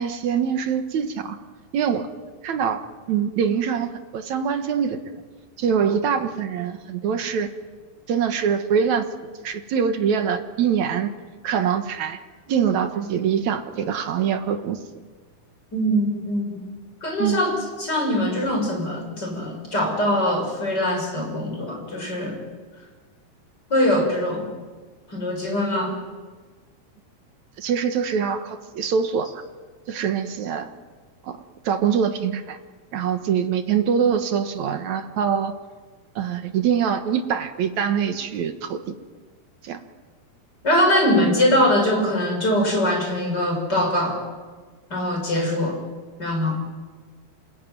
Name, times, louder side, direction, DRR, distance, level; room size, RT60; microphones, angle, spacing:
voice 1, 0.0-1.4 1.7-2.1 2.4-2.8 3.1-5.0 5.6-7.5 8.1-9.1 9.4-11.1 11.4-12.2 12.5-14.8 17.2-17.4 27.6-29.4 29.9-30.7 31.2-31.4 31.7-32.6 32.9-35.5 36.2-38.8 39.6-39.8, right 7 dB, 60° right, 7 dB, 2.2 m, -24 dB
voice 2, 15.7-16.6 17.0-22.4 23.7-24.5 25.1-25.9 40.6-44.2 44.9-45.8 46.2-46.5, left 1 dB, 25° left, 2 dB, 6.7 m, -22 dB
27.5 x 21.5 x 9.4 m, 1.4 s
omnidirectional pair, 4.6 m